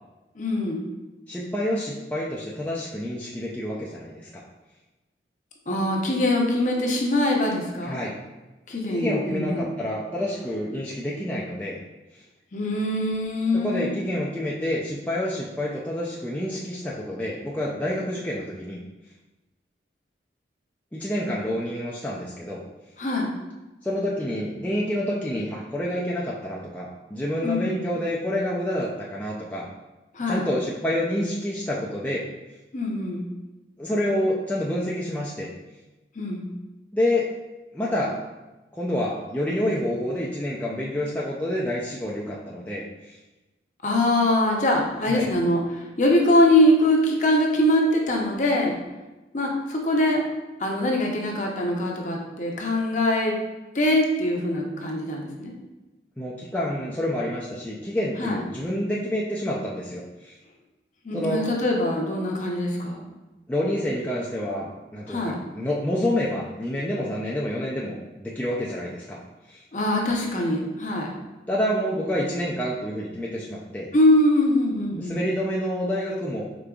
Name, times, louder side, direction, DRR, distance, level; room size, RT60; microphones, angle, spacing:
voice 1, 0.4-0.8 5.7-8.0 8.7-9.7 12.5-13.9 23.0-23.3 27.4-27.8 30.1-30.5 32.7-33.3 36.2-36.5 43.8-48.8 49.3-50.2 50.6-53.3 53.7-55.5 58.2-58.4 61.0-63.1 65.1-65.4 69.7-71.1 73.9-75.2, left 1 dB, 45° left, 0 dB, 0.7 m, -23 dB
voice 2, 1.3-4.4 7.8-8.1 8.9-11.8 13.5-18.8 20.9-22.6 23.8-29.7 30.3-32.2 33.8-35.5 36.9-37.3 37.7-38.2 38.8-43.2 45.1-45.3 56.2-60.3 61.1-61.4 63.5-69.2 69.5-69.6 71.5-73.9 75.0-76.4, left 1 dB, 10° left, -5 dB, 0.4 m, -28 dB
5.0 x 3.8 x 2.3 m, 1.1 s
head